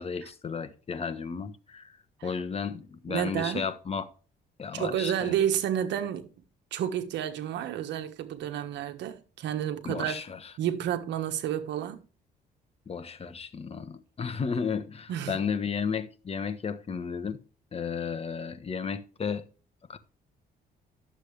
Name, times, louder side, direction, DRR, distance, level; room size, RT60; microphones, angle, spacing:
voice 1, 0.0-2.0 2.2-4.0 4.6-5.3 9.8-10.5 12.9-17.4 17.7-19.5 19.9-20.0, left 6 dB, 35° left, 1.3 m, -33 dB
voice 2, 3.1-3.7 4.7-6.3 6.7-10.2 10.6-12.0 15.1-15.4, right 10 dB, 80° right, 1.4 m, -30 dB
11.5 x 7.5 x 3.4 m
cardioid pair, 90°, 18 cm